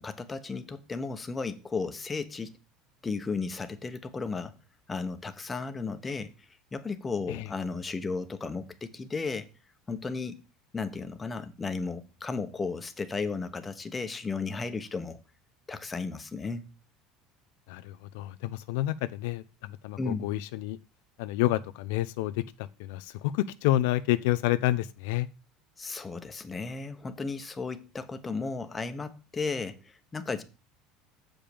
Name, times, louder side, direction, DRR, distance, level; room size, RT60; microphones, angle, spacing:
voice 1, 0.0-2.6 3.0-4.5 4.9-6.3 6.7-9.5 9.9-10.4 10.7-15.2 15.7-16.7 20.0-20.3 25.8-30.4, left 4 dB, 15° left, 1.0 m, -34 dB
voice 2, 17.7-20.8 21.2-25.3, left 15 dB, 80° left, 0.5 m, -29 dB
7.4 x 5.2 x 6.9 m
supercardioid pair, 125°, 0 cm